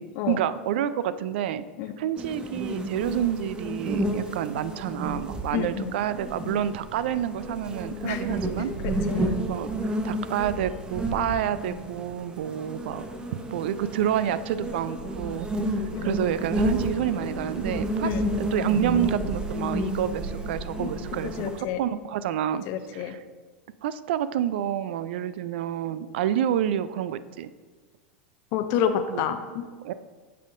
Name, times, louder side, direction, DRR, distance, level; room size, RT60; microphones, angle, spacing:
voice 1, 0.0-1.6 2.0-8.7 9.2-13.1 13.5-15.5 15.8-22.6 22.9-23.2 23.8-27.5 29.1-29.3 29.8-29.9, right 10 dB, 65° right, 15 dB, 0.3 m, -29 dB
sound 1, 2.2-21.6, right 1 dB, 15° right, 0.8 m, -31 dB
voice 2, 5.5-5.9 8.0-8.2 8.8-9.2 15.9-16.1 18.0-18.3 20.8-20.9 21.2-21.8 22.7-23.1 28.5-29.7, left 9 dB, 50° left, 8 dB, 0.5 m, -29 dB
8.5 x 5.6 x 2.5 m, 1.4 s
hypercardioid pair, 100°, 6 cm